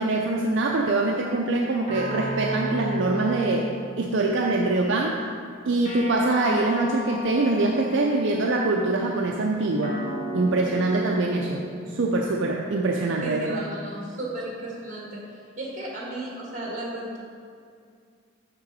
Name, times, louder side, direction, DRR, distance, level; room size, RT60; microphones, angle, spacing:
voice 1, 0.0-5.2 5.6-10.0 10.3-13.6, right 2 dB, 65° right, -1 dB, 0.5 m, -24 dB
sound 1, 1.9-4.5 5.8-8.4 9.8-12.4, right 2 dB, 35° left, 1.5 m, -34 dB
voice 2, 13.2-17.2, right 1 dB, 40° right, -3 dB, 1.6 m, -34 dB
6.7 x 6.1 x 4.1 m, 2.2 s
head